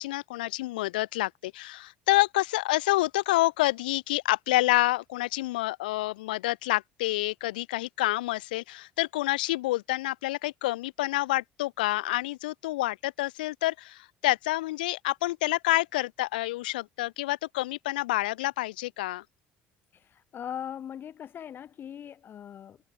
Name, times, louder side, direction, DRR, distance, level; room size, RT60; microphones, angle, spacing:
voice 1, 0.0-19.2, left 18 dB, 90° left, 1.7 m, -28 dB
voice 2, 19.9-22.8, left 9 dB, 50° left, 2.0 m, -40 dB
hypercardioid pair, 75°, 5 cm